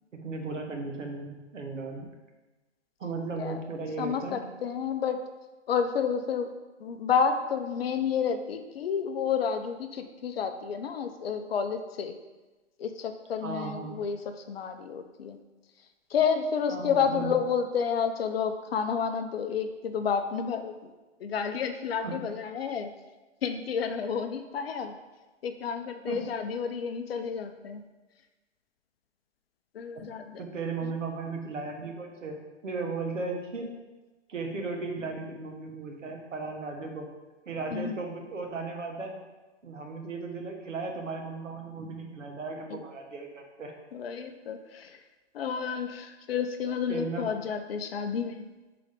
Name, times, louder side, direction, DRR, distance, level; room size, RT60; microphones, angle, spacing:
voice 1, 0.1-2.1 3.0-4.4 13.4-14.0 16.7-17.4 22.0-22.2 26.1-26.2 29.9-30.1 30.4-32.4 32.6-33.7 34.3-37.1 37.4-39.1 39.6-43.7 46.9-47.3, right 3 dB, 85° right, 2 dB, 1.4 m, -36 dB
voice 2, 4.0-5.2 5.7-6.5 6.8-12.1 12.8-14.2 14.5-15.4 16.1-20.9 21.2-22.9 23.4-24.9 25.4-27.8 29.7-30.4 37.7-38.0 43.9-45.0 45.3-48.4, left 6 dB, 55° left, 8 dB, 0.6 m, -30 dB
4.9 x 3.9 x 5.0 m, 1.2 s
hypercardioid pair, 145°, 37 cm